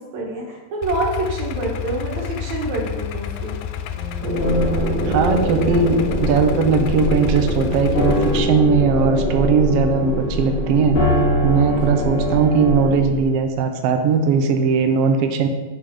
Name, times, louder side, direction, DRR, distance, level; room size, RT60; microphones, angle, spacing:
voice 1, 0.0-3.6, right 2 dB, 65° right, -2 dB, 2.8 m, -26 dB
Idling, 0.8-8.4, left 10 dB, 80° left, 2.1 m, -29 dB
sound 1, 3.9-12.9, left 1 dB, 35° left, 0.8 m, -25 dB
sound 2, 4.2-13.2, equal, 40° right, 1.7 m, -25 dB
voice 2, 5.0-11.0 11.4-15.5, right 5 dB, 85° right, 5 dB, 1.3 m, -18 dB
6.7 x 6.0 x 5.3 m, 1.2 s
omnidirectional pair, 3.6 m